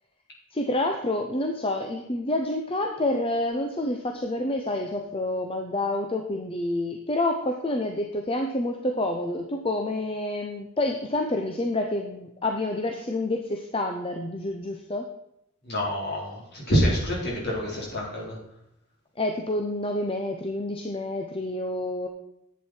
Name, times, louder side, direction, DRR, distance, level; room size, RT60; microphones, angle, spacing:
voice 1, 0.5-15.1 19.2-22.1, left 1 dB, 25° left, 4 dB, 0.8 m, -28 dB
voice 2, 15.6-18.4, equal, 45° left, -4 dB, 4.2 m, -26 dB
10.5 x 8.4 x 4.5 m, 0.82 s
head